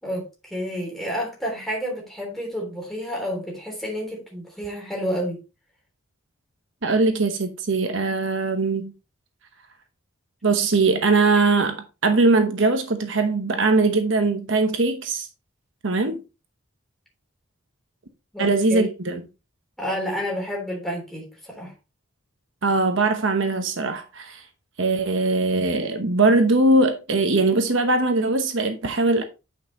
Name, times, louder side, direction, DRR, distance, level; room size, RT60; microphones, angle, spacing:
voice 1, 0.0-5.4 18.3-18.9 19.8-21.7, equal, ahead, 3.3 m, -30 dB
voice 2, 6.8-8.9 10.4-15.3 15.8-16.2 18.4-19.2 22.6-24.4 24.8-29.2, right 3 dB, 65° right, 1.0 m, -21 dB
9.4 x 5.5 x 2.9 m
head